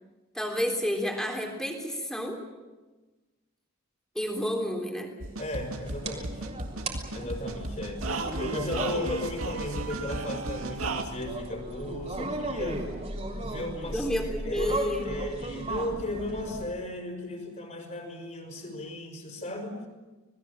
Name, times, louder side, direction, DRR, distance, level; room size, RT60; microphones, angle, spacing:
voice 1, 0.3-2.4 4.2-5.1 13.9-15.1, left 1 dB, 5° left, 2 dB, 3.5 m, -30 dB
sound 1, 5.2-11.0, right 2 dB, 75° right, 2.4 m, -34 dB
voice 2, 5.4-6.4 7.1-8.1 8.4-12.8 13.4-14.1 14.4-19.9, left 1 dB, 35° left, 3 dB, 5.8 m, -35 dB
sound 2, 5.8-16.7, right 1 dB, 30° right, 3.5 m, -36 dB
26.5 x 20.5 x 7.4 m, 1.2 s
head